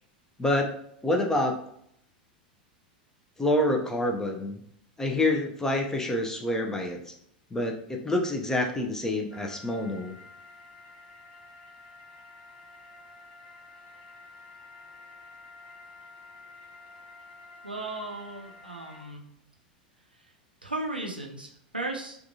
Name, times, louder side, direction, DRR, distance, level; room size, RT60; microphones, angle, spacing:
voice 1, 0.4-0.7 1.0-1.6 3.4-4.6 5.0-7.0 7.5-10.1, left 1 dB, 10° left, 2 dB, 0.5 m, -27 dB
sound 1, 9.3-19.1, left 3 dB, 65° left, 0.8 m, -50 dB
voice 2, 17.6-19.2 20.6-22.2, right 2 dB, 90° right, 0 dB, 0.6 m, -35 dB
3.5 x 2.4 x 2.7 m, 0.70 s
figure-of-eight pair, 85°, 5 cm